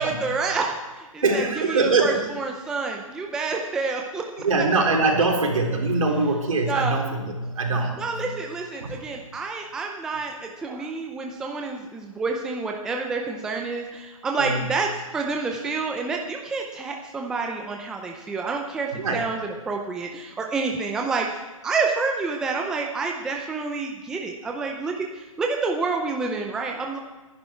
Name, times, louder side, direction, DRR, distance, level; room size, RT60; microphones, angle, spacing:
voice 1, 0.0-4.4 6.7-7.0 8.0-27.0, right 4 dB, 5° right, 1 dB, 0.5 m, -28 dB
voice 2, 1.2-2.2 4.4-8.2 8.8-9.0 10.7-10.8 14.4-14.6 19.0-19.2, right 3 dB, 70° right, 1 dB, 3.9 m, -23 dB
21.0 x 11.0 x 4.5 m, 1.2 s
hypercardioid pair, 160°, 18 cm